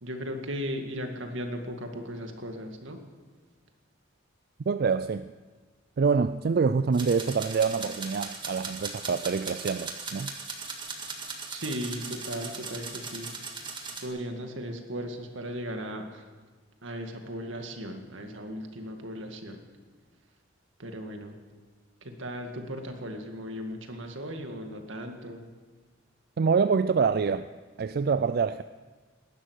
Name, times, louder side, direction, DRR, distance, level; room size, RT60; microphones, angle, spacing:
voice 1, 0.0-3.0 11.5-13.3 14.0-16.2 16.8-19.6 20.8-21.3 22.0-25.5, equal, 75° right, 4 dB, 2.0 m, -37 dB
voice 2, 4.7-5.3 6.0-10.3 26.4-27.5 27.8-28.6, right 5 dB, 50° right, 12 dB, 0.4 m, -26 dB
sound 1, 6.9-14.1, right 4 dB, 25° right, 1.8 m, -38 dB
19.0 x 12.0 x 6.5 m, 1.4 s
head